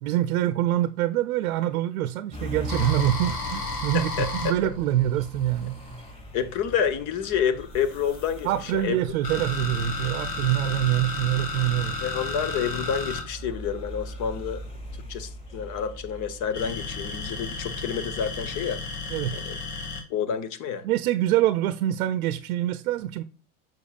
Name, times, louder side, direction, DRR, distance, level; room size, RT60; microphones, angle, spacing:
voice 1, 0.0-5.8 8.4-12.0 19.1-19.3 20.8-23.2, right 13 dB, 65° right, 0.7 m, -25 dB
sound 1, 2.3-19.2, equal, 10° left, 2.8 m, -41 dB
sound 2, 2.7-6.1 7.2-14.6 16.5-20.0, left 3 dB, 85° left, 2.1 m, -33 dB
voice 2, 3.9-4.3 4.6-4.7 6.3-9.0 12.0-14.6 15.1-18.8 19.3-19.6 20.1-20.9, left 7 dB, 45° left, 1.0 m, -29 dB
7.1 x 6.0 x 2.4 m
hypercardioid pair, 110°, 45 cm